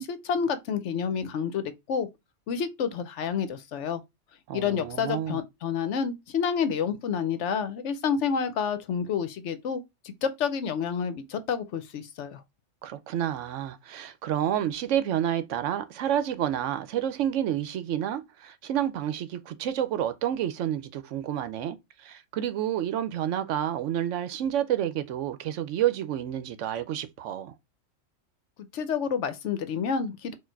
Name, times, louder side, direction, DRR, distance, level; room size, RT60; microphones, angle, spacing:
voice 1, 0.0-2.1 2.5-4.0 4.5-12.4 28.7-30.3, left 6 dB, 70° left, 0.9 m, -29 dB
voice 2, 4.5-5.4 12.8-27.5, right 10 dB, 75° right, 0.9 m, -29 dB
4.6 x 2.5 x 4.5 m
omnidirectional pair, 1.3 m